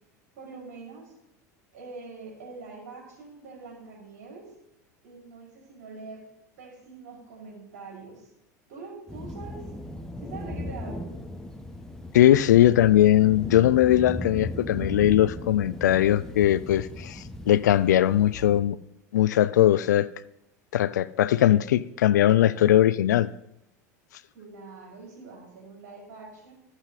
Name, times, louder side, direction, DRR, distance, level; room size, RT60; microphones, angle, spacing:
voice 1, 0.3-1.1 1.7-4.5 5.0-6.2 6.6-8.3 8.7-9.7 10.2-11.1 24.3-26.5, right 4 dB, 75° right, -2 dB, 5.2 m, -44 dB
sound 1, 9.1-18.6, left 1 dB, 5° left, 1.2 m, -37 dB
voice 2, 12.1-18.8 19.1-20.1 20.7-23.3, left 12 dB, 85° left, 18 dB, 0.4 m, -20 dB
13.0 x 8.0 x 4.1 m, 0.82 s
hypercardioid pair, 95°, 9 cm